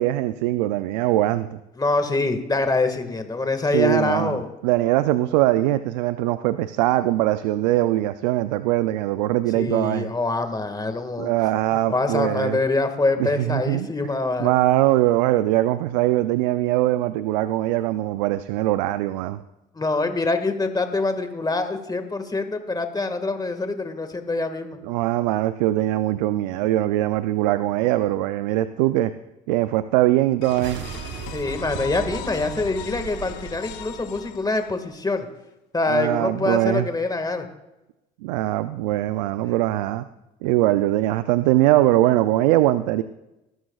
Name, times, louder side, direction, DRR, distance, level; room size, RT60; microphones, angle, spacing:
voice 1, 0.0-1.6 3.7-10.1 11.2-12.6 13.2-13.9 14.4-19.4 24.8-29.1 29.5-30.8 35.9-36.9 38.2-40.0 40.4-43.0, right 15 dB, 85° right, 13 dB, 0.4 m, -21 dB
voice 2, 1.8-4.5 9.5-11.3 11.7-14.6 19.7-24.8 31.3-35.3 35.7-37.5, left 3 dB, 20° left, 7 dB, 1.8 m, -25 dB
sound 1, 30.4-35.0, left 12 dB, 80° left, 0.9 m, -39 dB
sound 2, 30.4-35.0, right 9 dB, 65° right, 1.0 m, -38 dB
19.5 x 12.5 x 2.4 m, 0.95 s
hypercardioid pair, 65°, 21 cm